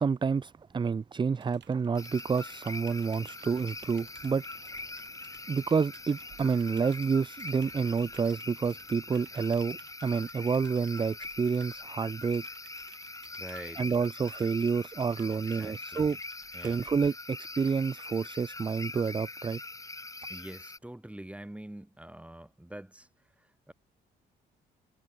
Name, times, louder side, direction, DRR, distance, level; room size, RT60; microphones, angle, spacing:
voice 1, 0.0-4.4 5.5-12.4 13.8-16.2 16.6-19.6, right 5 dB, 25° right, 0.5 m, -29 dB
Typing, 1.3-17.0, right 9 dB, 60° right, 6.9 m, -58 dB
sound 1, 2.0-20.8, left 2 dB, 15° left, 1.6 m, -43 dB
voice 2, 13.4-13.8 15.6-16.1 16.5-16.8 20.3-23.1 23.4-23.7, right 1 dB, 5° right, 3.2 m, -45 dB
cardioid pair, 90°, 20 cm